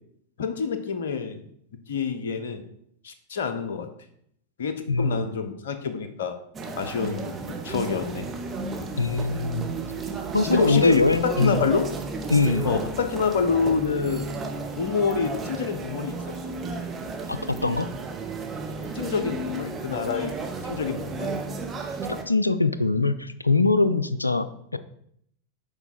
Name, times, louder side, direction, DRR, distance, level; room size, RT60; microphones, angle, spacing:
voice 1, 0.4-1.4 1.9-2.6 3.0-3.9 4.6-6.4 6.8-8.3 8.8-8.9 10.5-11.8 12.6-14.3 14.8-16.2 18.9-20.3 20.6-21.3, left 5 dB, 60° left, 9 dB, 0.7 m, -27 dB
voice 2, 4.9-5.3 9.0-9.7 10.3-11.7 12.3-12.8 17.3-17.9 22.3-24.8, left 3 dB, 85° left, 14 dB, 0.4 m, -23 dB
sound 1, 6.5-22.2, right 3 dB, 20° right, 0.9 m, -33 dB
6.8 x 4.5 x 4.2 m, 0.69 s
figure-of-eight pair, 90°, 0 cm